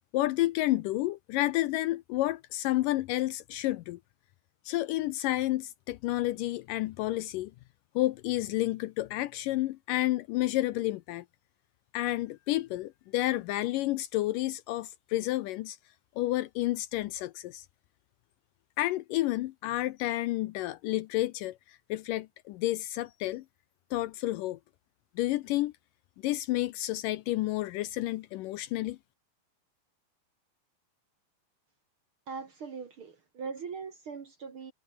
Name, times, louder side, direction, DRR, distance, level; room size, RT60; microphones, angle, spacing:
voice 1, 0.1-4.0 4.7-7.5 8.0-11.3 11.9-15.8 16.2-17.6 18.8-23.4 23.9-24.6 25.2-25.7 26.2-29.0, left 16 dB, 80° left, 2.1 m, -30 dB
voice 2, 32.3-34.7, right 5 dB, 50° right, 1.8 m, -40 dB
omnidirectional pair, 4.2 m